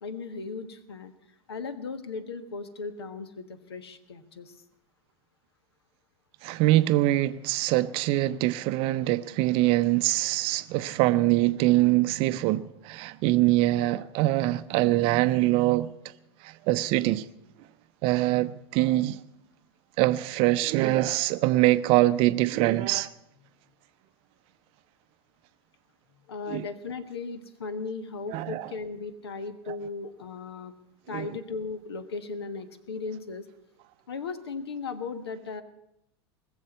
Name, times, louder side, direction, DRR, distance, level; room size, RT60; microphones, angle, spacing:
voice 1, 0.0-1.1 1.5-4.6 26.3-30.7 31.1-33.5 34.1-35.6, left 4 dB, 70° left, 1.3 m, -37 dB
voice 2, 6.4-15.9 16.4-17.3 18.0-19.2 20.0-23.1 26.5-26.7 28.3-28.7 29.7-29.8 31.1-31.3, right 17 dB, 40° right, 0.6 m, -24 dB
20.0 x 7.3 x 9.3 m
figure-of-eight pair, 85°, 14 cm